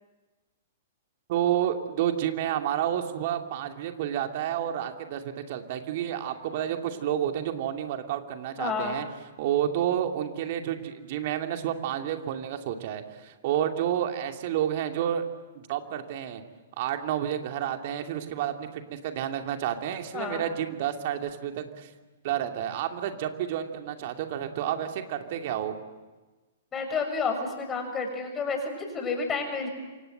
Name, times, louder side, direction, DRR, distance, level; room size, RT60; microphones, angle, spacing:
voice 1, 1.3-9.0 9.4-15.2 15.5-16.4 16.8-21.9 22.2-25.8, right 10 dB, 50° right, 5 dB, 2.5 m, -30 dB
voice 2, 8.6-9.0 20.1-20.4 26.7-29.7, left 4 dB, 20° left, 4 dB, 6.8 m, -30 dB
28.0 x 25.5 x 7.9 m, 1.2 s
figure-of-eight pair, 110°, 0 cm